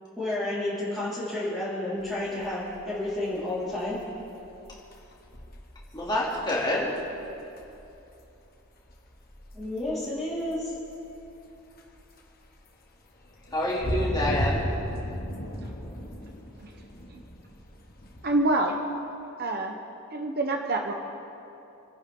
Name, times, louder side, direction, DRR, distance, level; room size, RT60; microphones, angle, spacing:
voice 1, 0.2-4.0 9.5-10.7, left 1 dB, ahead, -15 dB, 4.6 m, -31 dB
sound 1, 2.0-18.4, left 1 dB, 40° left, 1.6 m, -37 dB
voice 2, 5.9-7.0 13.5-14.6, left 1 dB, 20° left, -5 dB, 3.0 m, -27 dB
voice 3, 18.2-18.8 19.4-19.7 20.1-20.9, right 2 dB, 45° right, 3 dB, 1.0 m, -26 dB
29.5 x 10.5 x 3.9 m, 2.9 s
head